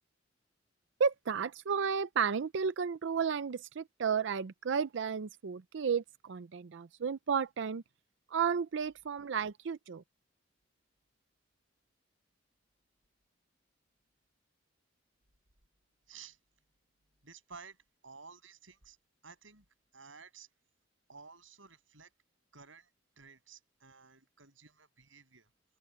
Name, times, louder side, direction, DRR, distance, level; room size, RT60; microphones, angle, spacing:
voice 1, 1.0-7.8 8.3-10.0, right 6 dB, 70° right, 0.5 m, -33 dB
voice 2, 16.1-16.4 17.2-17.8 18.0-19.0 19.2-19.6 19.9-20.5 21.1-22.1 22.5-22.9 23.2-25.5, right 5 dB, 85° right, 7.3 m, -54 dB
open air
head